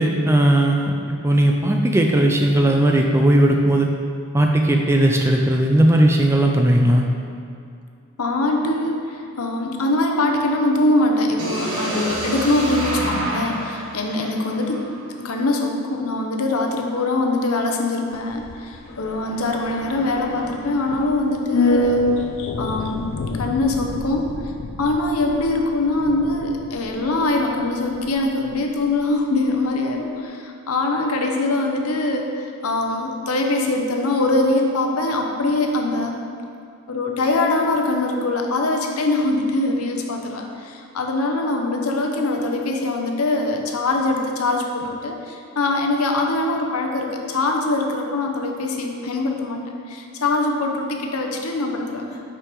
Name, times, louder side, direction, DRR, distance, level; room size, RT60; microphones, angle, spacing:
voice 1, 0.0-3.9 4.3-7.1, right 1 dB, 10° right, 2 dB, 0.4 m, -17 dB
voice 2, 8.2-14.8 15.2-22.0 22.6-23.0 23.4-24.3 24.8-36.2 36.9-52.2, left 2 dB, 80° left, 2 dB, 0.8 m, -23 dB
sound 1, 11.4-15.3, right 1 dB, 85° right, 1.3 m, -28 dB
sound 2, 18.1-28.6 28.9-29.0, left 2 dB, 60° left, 0.4 m, -28 dB
5.8 x 5.6 x 4.7 m, 2.5 s
head